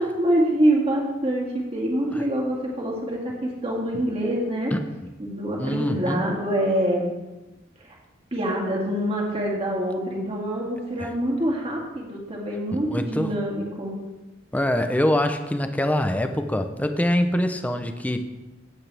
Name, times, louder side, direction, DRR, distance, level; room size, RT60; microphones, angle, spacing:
voice 1, 0.0-4.7 5.2-7.1 8.3-13.9, right 1 dB, 30° right, -2 dB, 2.3 m, -25 dB
voice 2, 4.7-5.1 5.6-6.2 11.0-11.1 12.9-13.3 14.5-18.2, left 1 dB, 10° left, 7 dB, 0.7 m, -24 dB
16.0 x 8.1 x 3.4 m, 1.1 s
head